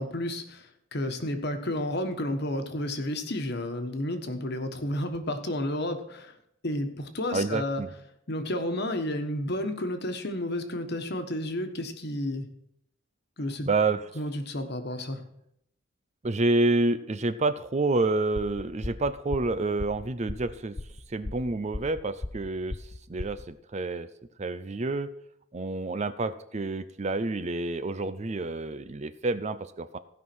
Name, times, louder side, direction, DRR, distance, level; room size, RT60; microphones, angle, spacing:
voice 1, 0.0-6.4 6.6-7.8 8.3-12.5 13.4-13.7 14.1-15.2, left 1 dB, 55° left, 7 dB, 1.4 m, -31 dB
voice 2, 7.3-7.9 13.7-14.0 16.2-20.7 21.1-24.1 24.4-25.1 25.5-30.0, right 2 dB, 35° right, 13 dB, 0.5 m, -28 dB
sound 1, 18.3-23.5, left 2 dB, 20° left, 0.4 m, -37 dB
16.0 x 5.6 x 6.1 m, 0.76 s
head